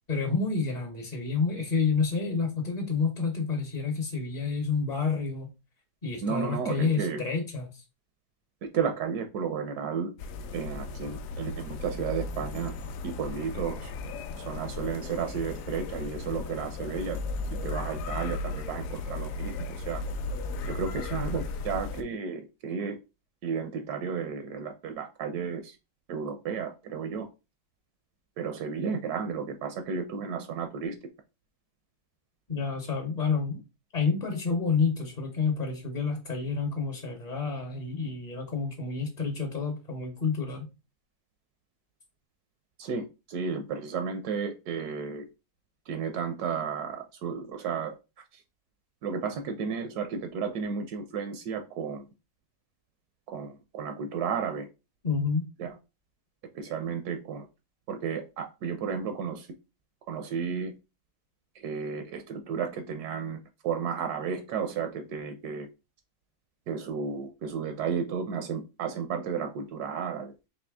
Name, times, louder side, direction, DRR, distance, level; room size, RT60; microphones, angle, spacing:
voice 1, 0.1-5.5 6.0-7.8 32.5-33.6 33.9-40.7 55.0-55.5, left 5 dB, 40° left, 2 dB, 0.6 m, -29 dB
voice 2, 6.2-7.2 8.6-10.1 10.5-12.7 13.0-13.9 14.4-17.2 17.6-20.0 20.6-23.0 23.4-25.8 26.1-27.3 28.4-31.0 42.8-45.3 45.9-48.0 48.3-48.4 49.0-52.1 53.3-54.7 55.6-55.7 56.5-57.5 57.9-59.5 60.1-60.7 61.5-65.7 66.7-70.3, right 6 dB, 80° right, 7 dB, 1.1 m, -33 dB
sound 1, 10.2-22.0, left 3 dB, 70° left, 0.9 m, -35 dB
4.2 x 2.8 x 3.4 m, 0.28 s
omnidirectional pair, 1.7 m